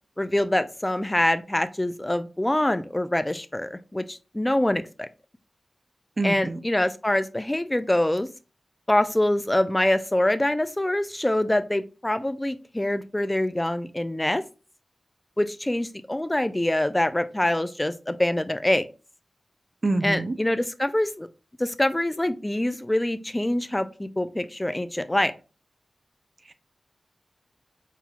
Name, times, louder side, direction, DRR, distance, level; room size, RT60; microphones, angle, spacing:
voice 1, 0.2-5.1 6.2-8.3 8.9-14.4 15.4-18.8 20.0-21.3 21.6-25.3, left 1 dB, 20° left, 0.4 m, -25 dB
voice 2, 6.2-6.6 19.8-20.3, right 2 dB, 45° right, 0.6 m, -25 dB
5.9 x 2.3 x 2.8 m
cardioid pair, 50°, 0 cm